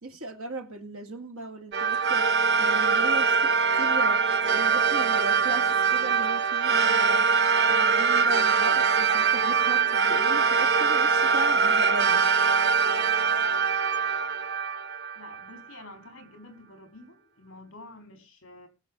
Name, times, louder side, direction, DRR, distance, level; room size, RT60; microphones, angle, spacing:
voice 1, 0.0-2.3 2.6-4.3 4.5-7.4 7.7-12.3, right 2 dB, 80° right, 2.6 m, -37 dB
sound 1, 1.7-15.5, right 5 dB, 50° right, 0.8 m, -23 dB
voice 2, 15.1-18.7, left 2 dB, 60° left, 4.1 m, -48 dB
21.0 x 7.2 x 3.8 m
head